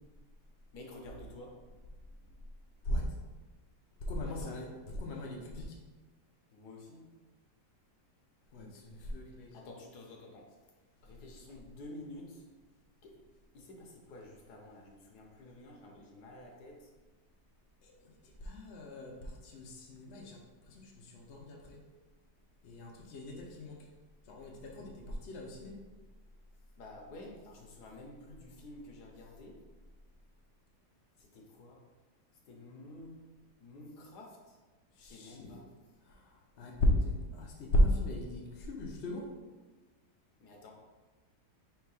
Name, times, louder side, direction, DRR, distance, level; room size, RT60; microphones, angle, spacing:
voice 1, 0.7-1.6 4.2-4.6 6.5-7.1 9.5-10.7 11.0-12.4 13.0-13.2 13.5-16.9 26.8-29.6 31.2-31.8 32.5-33.2 33.6-34.6 35.0-35.7 40.4-40.7, left 2 dB, 70° left, 0 dB, 1.4 m, -50 dB
voice 2, 4.1-4.7 5.0-5.8 8.5-9.5 18.4-20.4 20.7-21.8 22.6-23.8 24.3-25.7 35.0-35.5 36.1-36.2 36.6-39.3, left 1 dB, 55° left, -1 dB, 0.8 m, -35 dB
3.6 x 3.2 x 4.7 m, 1.2 s
omnidirectional pair, 1.8 m